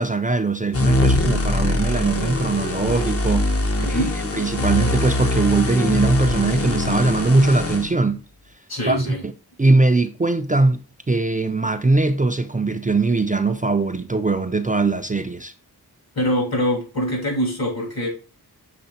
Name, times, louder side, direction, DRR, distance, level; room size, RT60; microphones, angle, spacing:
voice 1, 0.0-4.0 4.3-8.2 8.9-9.3 9.6-10.8 11.1-15.5, right 3 dB, 20° right, 0.4 m, -20 dB
sound 1, 0.7-7.9, left 2 dB, 35° left, 0.8 m, -22 dB
voice 2, 3.7-4.2 8.7-9.2 16.1-18.1, equal, 65° left, 3.1 m, -24 dB
6.7 x 3.4 x 4.1 m
wide cardioid pair, 90°, 39 cm